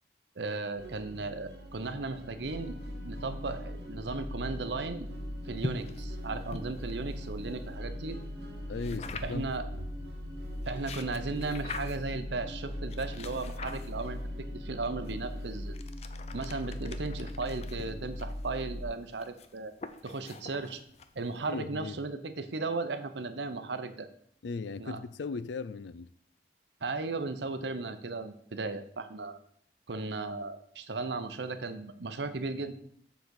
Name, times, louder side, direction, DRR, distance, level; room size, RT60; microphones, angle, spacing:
voice 1, 0.4-2.8 3.0-5.1 5.5-8.2 9.2-9.6 10.7-15.8 16.3-19.7 20.0-20.8 21.2-24.1 24.8-25.0 26.8-29.4 29.9-32.7, right 3 dB, 80° right, 0.7 m, -36 dB
sound 1, 0.8-15.7, right 1 dB, 65° right, 1.4 m, -48 dB
sound 2, 2.4-18.8, left 1 dB, 15° left, 1.0 m, -40 dB
sound 3, 5.6-7.8 8.8-9.6 10.5-12.2 12.9-14.3 15.0-21.5, left 3 dB, 35° left, 0.5 m, -44 dB
voice 2, 8.7-9.5 21.5-22.0 24.4-26.1, left 4 dB, 90° left, 0.4 m, -37 dB
7.2 x 3.9 x 6.3 m
head